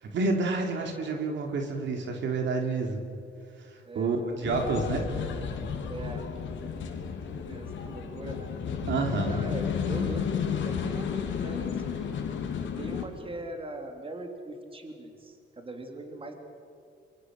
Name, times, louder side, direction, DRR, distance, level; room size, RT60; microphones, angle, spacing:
voice 1, 0.0-3.0 3.6-5.0 8.9-9.4, right 3 dB, 65° right, 3 dB, 3.3 m, -29 dB
voice 2, 3.8-4.9 5.9-6.3 6.5-6.6 7.3-8.5 9.3-12.0 12.7-16.3, right 2 dB, 25° right, 3 dB, 3.4 m, -41 dB
sound 1, 4.4-13.1, left 6 dB, 70° left, 3.2 m, -32 dB
26.0 x 24.0 x 6.6 m, 2.4 s
cardioid pair, 90°, 20 cm